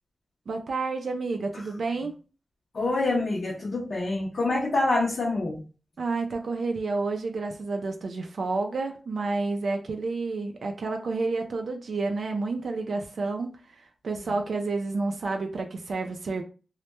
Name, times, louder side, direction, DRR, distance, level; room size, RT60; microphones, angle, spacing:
voice 1, 0.5-2.1 6.0-16.4, right 3 dB, 70° right, 4 dB, 0.3 m, -30 dB
voice 2, 2.7-5.6, left 2 dB, 60° left, -3 dB, 0.5 m, -26 dB
2.1 x 2.1 x 2.9 m, 0.34 s
wide cardioid pair, 135°, 0 cm